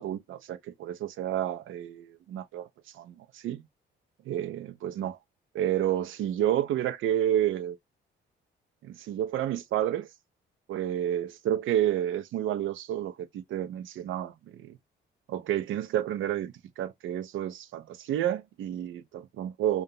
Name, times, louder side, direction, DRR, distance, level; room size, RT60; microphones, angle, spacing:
voice 1, 0.0-2.7 2.9-3.6 4.3-5.2 5.5-7.8 8.8-10.1 10.7-14.8 15.3-19.8, right 11 dB, 80° right, 0.8 m, -30 dB
5.2 x 2.6 x 2.9 m
cardioid pair, 90°, 20 cm